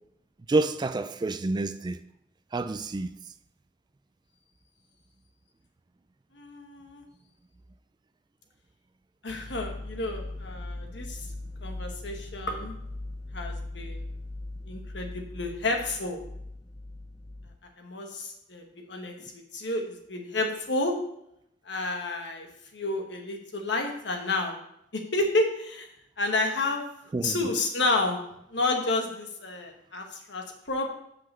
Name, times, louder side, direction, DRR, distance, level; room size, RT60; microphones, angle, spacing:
voice 1, 0.5-2.0 2.5-3.1 27.1-27.5, right 2 dB, 25° right, 0.3 m, -28 dB
voice 2, 6.4-7.0 9.2-11.2 11.6-12.7 13.3-14.0 14.6-16.2 17.8-18.6 18.9-21.0 21.7-22.5 22.7-24.6 24.9-25.9 26.2-26.8 27.2-28.2 28.5-30.9, left 2 dB, 70° left, 1.3 m, -30 dB
sound 1, 9.3-17.6, left 2 dB, 20° left, 0.6 m, -39 dB
5.7 x 5.3 x 6.8 m
head